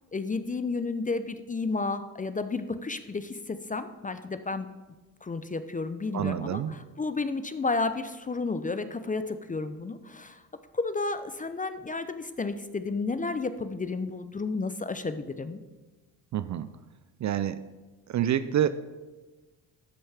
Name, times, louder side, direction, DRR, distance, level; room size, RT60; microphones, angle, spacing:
voice 1, 0.1-4.7 5.2-10.4 10.7-15.6, left 3 dB, 20° left, 11 dB, 0.5 m, -32 dB
voice 2, 6.1-6.7 16.3-16.7 17.2-17.6 18.1-18.7, right 10 dB, 40° right, 13 dB, 0.4 m, -27 dB
12.5 x 5.4 x 3.5 m, 1.2 s
hypercardioid pair, 60°, 47 cm